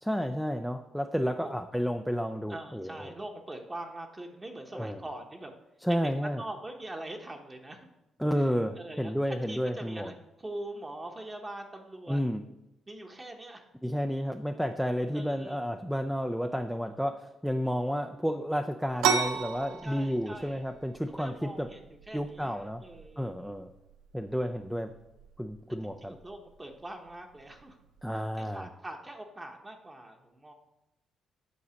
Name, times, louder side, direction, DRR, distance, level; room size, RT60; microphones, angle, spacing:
voice 1, 0.0-3.1 4.7-5.0 5.8-6.4 8.2-10.1 12.1-12.4 13.8-21.7 22.1-22.8 23.2-23.7 24.1-24.9 25.4-26.1 28.0-28.7, equal, ahead, 6 dB, 0.5 m, -31 dB
voice 2, 2.5-5.5 5.9-7.9 8.4-8.5 8.8-9.1 9.5-12.2 12.9-13.6 15.1-15.6 19.8-20.6 21.2-23.3 25.8-27.8 28.1-30.5, right 1 dB, 20° right, 2 dB, 1.0 m, -43 dB
sound 1, 19.0-28.4, right 7 dB, 90° right, 0.5 m, -36 dB
8.6 x 4.0 x 6.3 m, 0.92 s
cardioid pair, 90°, 0 cm